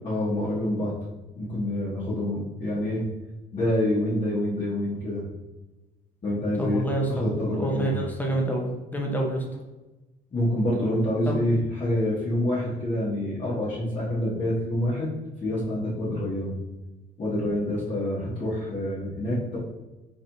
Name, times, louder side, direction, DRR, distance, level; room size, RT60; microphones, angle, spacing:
voice 1, 0.0-0.9 1.3-3.0 3.5-5.2 6.2-8.0 10.3-15.1 15.4-16.5 17.2-19.6, left 1 dB, 35° left, -8 dB, 1.2 m, -27 dB
voice 2, 6.6-7.0 7.6-8.7 8.9-9.4 11.3-11.4, right 1 dB, 10° left, 0 dB, 0.8 m, -27 dB
4.3 x 3.3 x 2.7 m, 1.1 s
cardioid pair, 110°, 17 cm